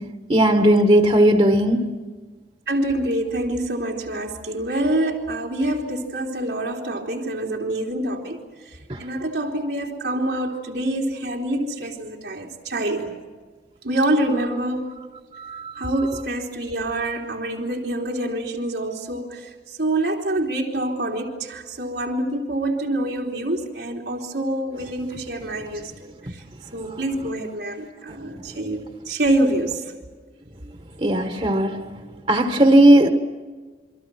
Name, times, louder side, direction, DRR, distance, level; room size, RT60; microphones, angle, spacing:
voice 1, 0.0-2.0 8.9-9.0 15.4-15.9 31.0-32.0 32.3-33.1, right 1 dB, 35° right, 1.4 m, -17 dB
voice 2, 2.7-8.4 9.0-13.2 13.8-14.9 15.8-26.4 26.7-29.9, right 1 dB, 85° right, 3.3 m, -26 dB
28.0 x 24.5 x 6.2 m
head